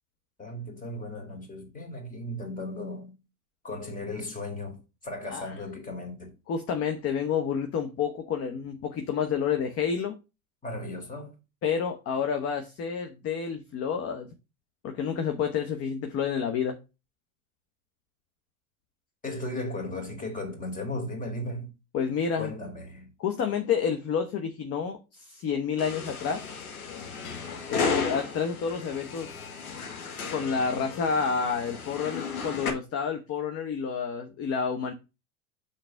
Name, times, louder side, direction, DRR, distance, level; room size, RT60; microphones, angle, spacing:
voice 1, 0.4-3.2 3.6-6.3 10.6-11.3 19.2-21.7 22.4-23.1 27.5-28.0, left 1 dB, 20° left, 2.9 m, -36 dB
voice 2, 6.5-10.1 11.6-14.3 14.8-16.8 21.9-22.5 23.2-26.5 27.7-29.4 30.3-34.9, left 6 dB, 35° left, 1.0 m, -29 dB
sound 1, 25.8-32.7, left 5 dB, 75° left, 1.7 m, -34 dB
6.0 x 4.0 x 6.3 m
hypercardioid pair, 90°, 44 cm